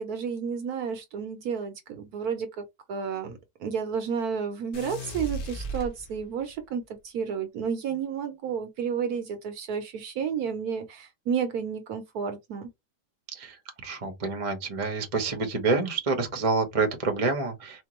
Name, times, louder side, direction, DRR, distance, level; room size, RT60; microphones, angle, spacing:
voice 1, 0.0-12.7, right 7 dB, 70° right, 1.2 m, -31 dB
sound 1, 4.7-6.5, right 1 dB, 65° left, 1.4 m, -36 dB
voice 2, 13.3-17.8, right 4 dB, 25° right, 0.8 m, -28 dB
4.3 x 2.3 x 3.0 m
omnidirectional pair, 1.8 m